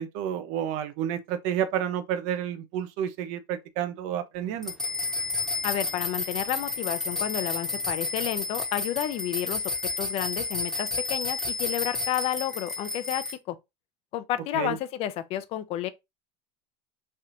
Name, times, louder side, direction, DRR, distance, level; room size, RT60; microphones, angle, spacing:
voice 1, 0.0-4.7 14.5-14.8, right 9 dB, 60° right, 0.5 m, -30 dB
sound 1, 4.6-13.3, left 3 dB, 5° left, 0.8 m, -31 dB
voice 2, 5.6-9.6 10.0-13.6 14.1-15.9, left 12 dB, 50° left, 0.4 m, -31 dB
3.3 x 2.4 x 2.8 m
supercardioid pair, 120°, 14 cm